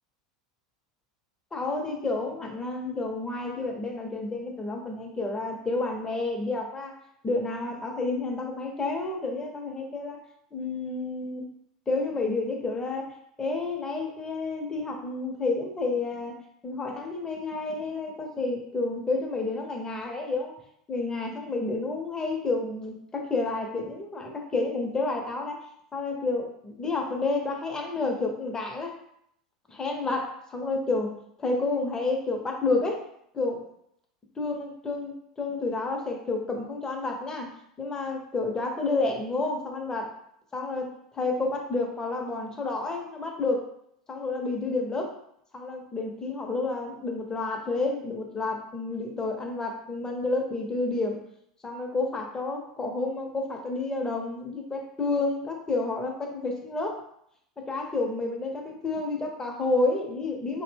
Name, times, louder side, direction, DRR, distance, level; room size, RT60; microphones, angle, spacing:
voice 1, 1.5-6.9 7.2-10.2 10.5-11.4 11.9-13.1 13.4-16.4 16.6-20.5 20.9-25.7 25.9-29.0 29.7-31.1 31.4-33.0 33.3-33.7 34.4-40.1 40.5-43.7 44.1-45.2 45.5-51.2 51.6-57.0 57.7-60.6, left 3 dB, 20° left, 2 dB, 0.6 m, -30 dB
2.6 x 2.1 x 3.3 m, 0.72 s
hypercardioid pair, 85°, 4 cm